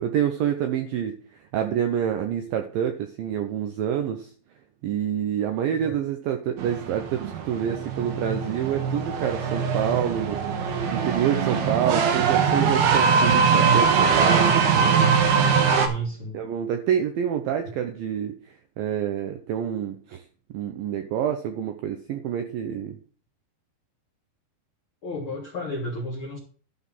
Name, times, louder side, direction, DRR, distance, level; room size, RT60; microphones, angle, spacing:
voice 1, 0.0-4.3 4.8-10.4 10.9-15.2 16.3-20.2 20.5-23.0, right 9 dB, 85° right, 6 dB, 2.0 m, -27 dB
sound 1, 6.6-15.9, right 6 dB, 70° right, 2.9 m, -22 dB
voice 2, 15.6-16.4 25.0-26.4, equal, 65° left, -2 dB, 1.3 m, -33 dB
11.5 x 4.1 x 7.2 m, 0.42 s
omnidirectional pair, 5.0 m